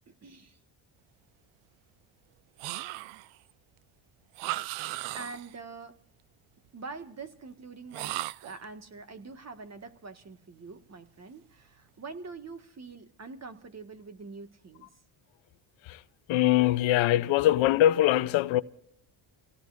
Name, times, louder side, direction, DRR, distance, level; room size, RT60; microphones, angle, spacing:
voice 1, 0.1-0.6 4.7-6.0 6.7-8.1 8.4-14.9, right 4 dB, 35° right, 1.8 m, -45 dB
sound 1, 2.6-3.4 4.3-5.6 7.9-8.7, right 17 dB, 85° right, 0.6 m, -36 dB
voice 2, 16.3-18.6, left 13 dB, 75° left, 0.8 m, -23 dB
30.0 x 18.0 x 2.6 m
supercardioid pair, 80°, 47 cm